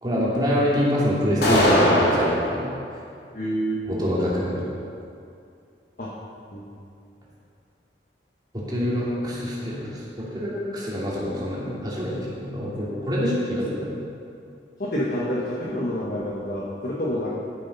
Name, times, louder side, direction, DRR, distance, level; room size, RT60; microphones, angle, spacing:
voice 1, 0.0-2.7 3.9-4.5 8.5-13.9, equal, 25° right, -7 dB, 2.8 m, -25 dB
sound 1, 1.4-2.4, equal, 65° left, 2.6 m, -19 dB
voice 2, 3.3-3.8 6.0-6.1 6.5-6.7 14.8-17.3, equal, 50° left, -6 dB, 1.3 m, -28 dB
12.5 x 7.5 x 5.5 m, 2.5 s
head